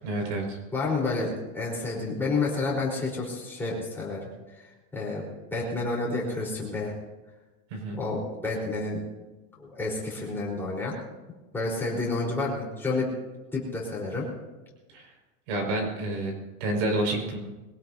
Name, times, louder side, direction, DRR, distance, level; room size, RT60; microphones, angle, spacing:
voice 1, 0.0-0.6 7.7-8.0 14.9-15.1 15.5-17.4, right 2 dB, 55° right, 1 dB, 5.6 m, -29 dB
voice 2, 0.7-4.6 4.9-5.2 5.5-6.9 7.9-9.0 9.6-10.9 11.5-13.1 13.5-14.3, left 3 dB, 5° left, -5 dB, 4.2 m, -30 dB
23.5 x 16.5 x 2.8 m, 1.2 s
supercardioid pair, 165°, 45 cm